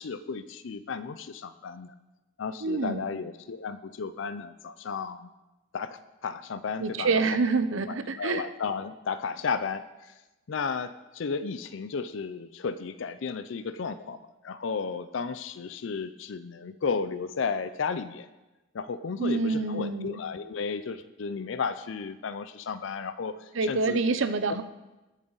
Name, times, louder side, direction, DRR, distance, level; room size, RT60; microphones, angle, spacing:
voice 1, 0.0-1.9 2.4-5.3 5.7-7.2 7.9-9.8 10.5-18.3 18.7-24.0 24.5-24.6, left 5 dB, 65° left, 12 dB, 0.4 m, -33 dB
voice 2, 2.6-3.1 6.8-8.5 19.2-20.2 23.5-24.6, right 3 dB, 70° right, 11 dB, 0.7 m, -27 dB
19.5 x 7.4 x 4.0 m, 1.1 s
head